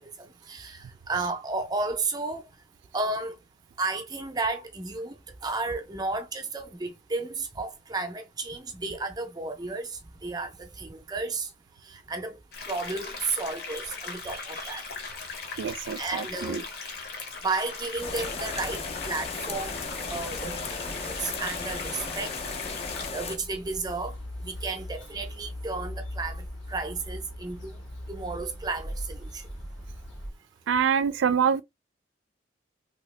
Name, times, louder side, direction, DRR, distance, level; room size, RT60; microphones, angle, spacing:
voice 1, 0.5-0.8 1.1-2.4 2.9-3.3 3.8-5.1 5.4-11.5 11.9-12.4 12.7-14.8 16.0-16.7 17.4-19.8 20.1-22.3 23.1-24.1 24.4-27.7 28.1-29.4, right 3 dB, 20° right, 0.5 m, -33 dB
sound 1, 12.5-23.1, left 4 dB, 55° left, 0.9 m, -39 dB
voice 2, 15.6-16.6 30.7-31.6, right 7 dB, 85° right, 0.3 m, -25 dB
sound 2, 17.9-30.3, equal, 85° left, 1.3 m, -41 dB
sound 3, 18.0-23.4, left 5 dB, 30° left, 0.4 m, -36 dB
2.8 x 2.7 x 3.2 m
head